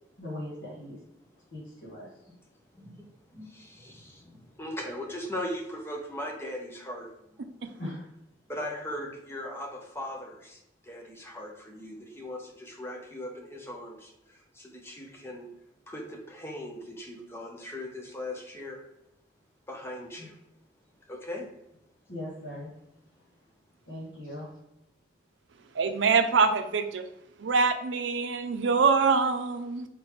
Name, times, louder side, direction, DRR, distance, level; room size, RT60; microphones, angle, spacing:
voice 1, 0.2-1.0 1.5-2.1 7.8-8.1 22.1-22.7 23.8-24.5, left 1 dB, 75° left, -9 dB, 1.6 m, -39 dB
voice 2, 2.5-7.4 8.5-15.5 15.9-18.9 19.7-20.4 21.1-21.5, left 1 dB, 15° left, 0 dB, 0.8 m, -39 dB
voice 3, 25.8-27.1 27.4-29.9, right 5 dB, 85° right, 8 dB, 0.5 m, -24 dB
4.3 x 3.4 x 3.1 m, 0.87 s
head